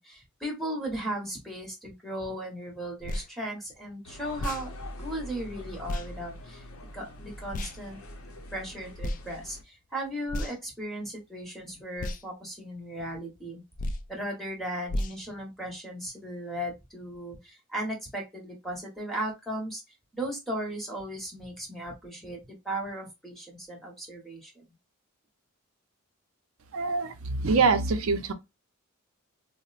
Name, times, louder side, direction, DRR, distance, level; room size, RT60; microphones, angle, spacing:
voice 1, 0.0-4.7 5.0-6.6 6.9-8.0 8.5-13.6 14.1-19.8 20.1-22.4 22.6-24.6, right 1 dB, ahead, 1.0 m, -36 dB
sound 1, 3.0-3.3 4.3-4.7 5.9-6.1 7.5-7.8 9.0-9.2 10.3-10.7 12.0-12.2 13.8-14.1 14.9-15.2, left 1 dB, 40° left, 0.3 m, -32 dB
sound 2, 4.0-9.6, left 1 dB, 75° left, 0.7 m, -44 dB
voice 2, 26.7-28.3, right 4 dB, 70° right, 0.5 m, -25 dB
4.1 x 2.1 x 2.4 m
head